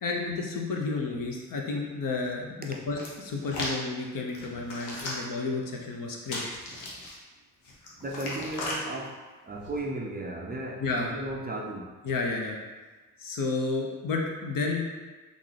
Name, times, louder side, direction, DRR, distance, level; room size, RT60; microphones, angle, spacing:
voice 1, 0.0-6.5 9.0-9.1 10.8-11.1 12.0-12.6 13.2-14.9, left 3 dB, 50° left, 0 dB, 0.8 m, -31 dB
Hands, 3.0-3.8 4.3-5.4 6.3-7.1 7.6-8.8 9.5-9.8, left 2 dB, 85° left, 0.9 m, -37 dB
voice 2, 8.0-9.2 9.4-11.9, right 1 dB, 25° right, -1 dB, 0.4 m, -35 dB
3.6 x 2.5 x 3.2 m, 1.3 s
hypercardioid pair, 45°, 42 cm